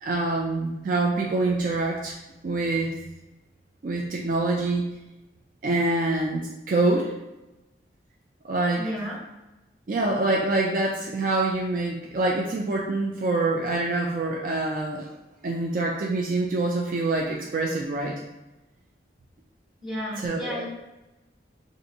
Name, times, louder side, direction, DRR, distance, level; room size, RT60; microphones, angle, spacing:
voice 1, 0.0-2.2 2.4-2.9 3.8-4.9 5.6-7.1 8.4-8.8 9.9-15.1 15.4-18.1 20.2-20.7, right 2 dB, 50° right, -1 dB, 0.3 m, -25 dB
voice 2, 8.8-9.2 19.8-20.7, equal, ahead, -7 dB, 1.1 m, -32 dB
4.1 x 2.5 x 2.6 m, 1.0 s
head